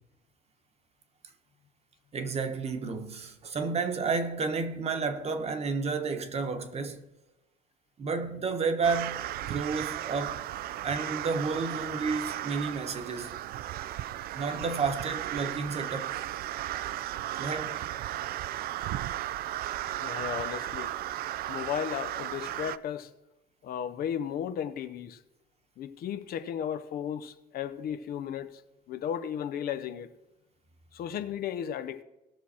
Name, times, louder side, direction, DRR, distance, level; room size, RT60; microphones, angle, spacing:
voice 1, 2.1-7.0 8.0-10.4 10.8-13.4 14.3-16.2 17.4-17.8, right 4 dB, 40° right, 1.2 m, -31 dB
sound 1, 8.8-22.8, right 13 dB, 65° right, 0.4 m, -35 dB
voice 2, 20.0-21.0 21.5-23.1 23.6-25.2 25.8-28.6 28.9-30.1 30.9-32.0, left 9 dB, 60° left, 0.7 m, -34 dB
18.0 x 6.1 x 4.3 m
cardioid pair, 110°, 17 cm